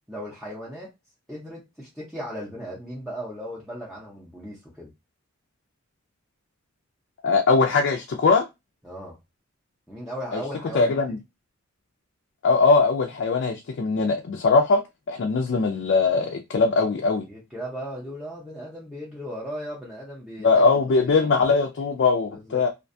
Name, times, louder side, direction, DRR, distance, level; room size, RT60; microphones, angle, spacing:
voice 1, 0.1-0.9 1.3-4.9 8.8-9.2 9.9-11.0 17.3-20.7 21.1-21.3 22.3-22.7, equal, ahead, 0.6 m, -36 dB
voice 2, 7.2-8.5 10.3-10.4 10.7-11.2 12.4-14.8 15.1-17.3 20.4-22.7, left 4 dB, 55° left, 0.4 m, -21 dB
2.5 x 2.2 x 2.6 m
head